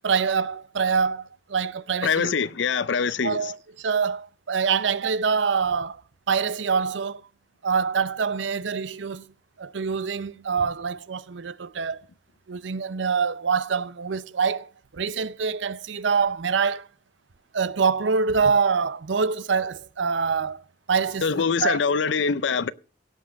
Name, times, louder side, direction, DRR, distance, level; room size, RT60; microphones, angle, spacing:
voice 1, 0.0-2.4 3.2-6.0 6.3-7.2 7.6-9.3 9.6-12.0 12.5-16.9 17.5-20.6 20.9-21.9, right 5 dB, 80° right, 0.6 m, -25 dB
voice 2, 2.0-3.5 21.2-22.7, left 5 dB, 80° left, 0.6 m, -24 dB
17.0 x 6.5 x 6.3 m
head